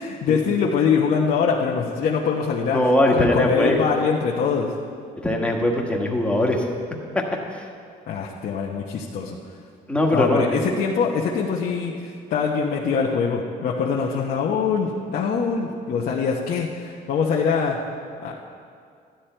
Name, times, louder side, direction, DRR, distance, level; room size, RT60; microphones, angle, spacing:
voice 1, 0.0-2.8 3.1-4.7 8.1-9.4 10.1-17.8 18.2-18.3, left 6 dB, 60° left, -3 dB, 1.0 m, -23 dB
voice 2, 2.7-3.8 5.2-6.7 7.1-7.2 7.5-7.7 9.9-10.6, left 1 dB, 5° left, 0 dB, 1.6 m, -21 dB
12.5 x 10.5 x 4.5 m, 2.3 s
cardioid pair, 110°, 17 cm